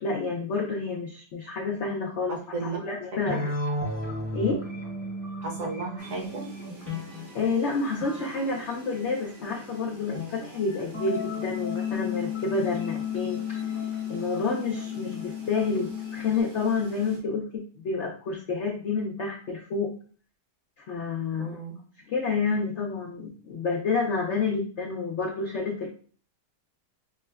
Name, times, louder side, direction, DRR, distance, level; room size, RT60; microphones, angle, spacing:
voice 1, 0.0-3.5 4.3-4.6 7.3-13.7 14.1-20.0 20.9-21.6 22.1-25.9, left 4 dB, 70° left, 0 dB, 0.6 m, -29 dB
voice 2, 2.3-2.8 3.3-3.4 5.4-6.5 21.4-21.8, right 3 dB, 55° right, -2 dB, 1.3 m, -34 dB
sound 1, 3.3-9.4 10.1-16.4, left 5 dB, 15° left, 0.7 m, -34 dB
sound 2, 6.0-17.2, right 3 dB, 90° right, 1.7 m, -47 dB
5.8 x 2.1 x 2.2 m, 0.42 s
omnidirectional pair, 1.8 m